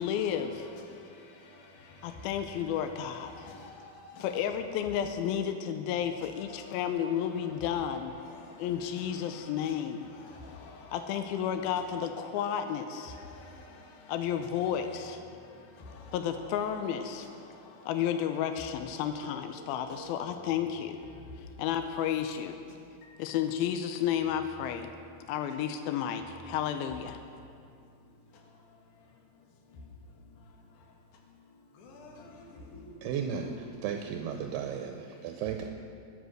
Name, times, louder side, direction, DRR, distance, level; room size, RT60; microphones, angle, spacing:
voice 1, 0.0-0.7 2.0-3.5 4.2-8.2 8.6-10.1 10.9-13.2 14.1-15.2 16.1-17.3 17.9-21.0 21.6-22.6 23.2-24.9 25.3-27.2, left 9 dB, 80° left, 2.3 m, -32 dB
voice 2, 0.9-2.4 3.2-4.3 6.5-6.8 7.2-7.5 8.3-11.0 13.1-14.1 15.3-16.2 17.2-17.9 19.3-20.4 21.2-21.5 23.0-23.2 28.3-28.4 29.8-29.9 30.8-30.9 31.7-33.1, left 3 dB, 55° left, 2.9 m, -50 dB
voice 3, 33.0-35.7, right 7 dB, 80° right, 2.6 m, -35 dB
21.0 x 8.1 x 6.3 m
omnidirectional pair, 4.8 m